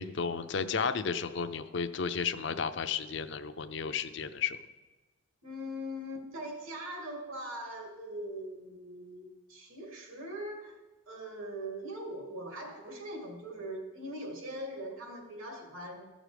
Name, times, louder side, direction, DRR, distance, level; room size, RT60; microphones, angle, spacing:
voice 1, 0.0-4.6, left 6 dB, 55° left, 10 dB, 0.5 m, -33 dB
voice 2, 5.4-10.8 11.1-16.0, equal, 75° right, 2 dB, 2.4 m, -41 dB
14.0 x 6.2 x 5.1 m, 1.2 s
head